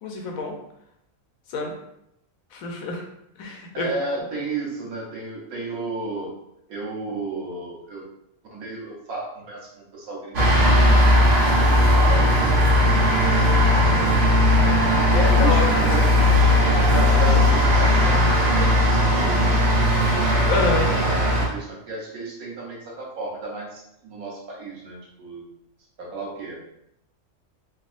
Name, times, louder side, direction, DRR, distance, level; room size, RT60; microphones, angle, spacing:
voice 1, 0.0-0.6 1.5-1.7 2.5-3.0 3.4-3.9 15.1-15.9 20.5-21.0, left 3 dB, 85° left, 1 dB, 1.1 m, -27 dB
voice 2, 3.7-6.3 6.7-8.1 8.5-10.9 11.2-12.3 12.5-14.2 15.1-16.4 16.9-19.8 20.5-25.5 26.0-26.6, right 3 dB, 85° right, -3 dB, 1.3 m, -34 dB
sound 1, 10.3-21.5, left 1 dB, 65° right, 1.2 m, -18 dB
3.4 x 2.4 x 2.5 m, 0.80 s
omnidirectional pair, 1.4 m